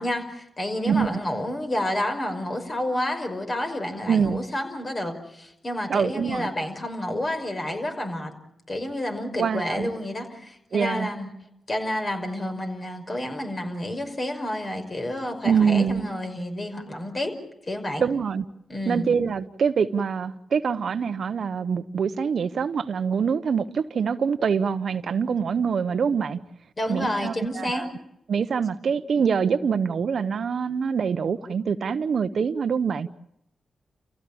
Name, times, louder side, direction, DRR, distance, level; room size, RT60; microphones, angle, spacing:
voice 1, 0.0-8.3 8.7-11.3 11.7-17.3 17.7-18.0 18.7-19.1 26.8-27.9, left 1 dB, 40° left, 5.5 m, -29 dB
voice 2, 4.1-4.4 5.9-6.5 9.4-9.9 10.7-11.1 15.4-16.1 18.0-18.4 18.9-26.4 26.9-27.9 28.3-33.1, right 6 dB, 70° right, 0.9 m, -24 dB
29.5 x 16.0 x 8.7 m
cardioid pair, 55°, 0 cm